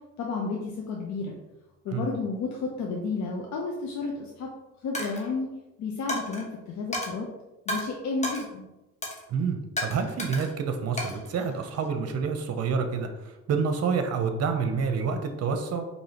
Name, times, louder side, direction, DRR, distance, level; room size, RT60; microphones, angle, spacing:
voice 1, 0.2-1.3 1.8-4.5 4.8-5.5 5.8-7.3 7.7-8.7, left 4 dB, 65° left, -1 dB, 0.6 m, -31 dB
Coin (dropping), 4.9-5.3 6.1-6.4 6.9-7.1 7.7-7.8 8.2-8.5 9.0-9.2 9.8-10.5 11.0-11.9, left 1 dB, 20° left, 1.0 m, -33 dB
voice 2, 9.3-13.1 13.5-15.9, right 5 dB, 55° right, 6 dB, 0.7 m, -28 dB
4.7 x 2.8 x 2.9 m, 1.0 s
cardioid pair, 90°, 30 cm